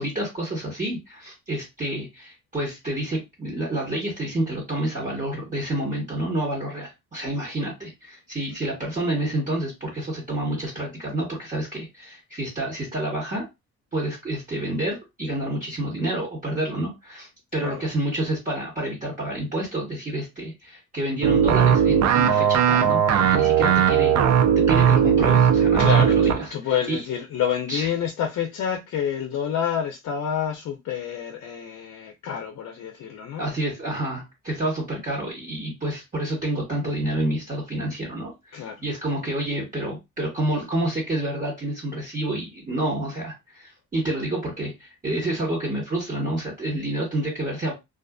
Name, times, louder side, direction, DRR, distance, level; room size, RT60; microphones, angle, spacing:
voice 1, 0.0-13.4 13.9-27.0 27.7-27.9 33.4-47.7, right 1 dB, 25° right, 1.1 m, -29 dB
sound 1, 21.2-26.5, right 8 dB, 65° right, 0.5 m, -18 dB
voice 2, 25.8-33.5 38.5-38.8, left 8 dB, 60° left, 0.6 m, -28 dB
2.4 x 2.4 x 2.3 m
cardioid pair, 90°, 30 cm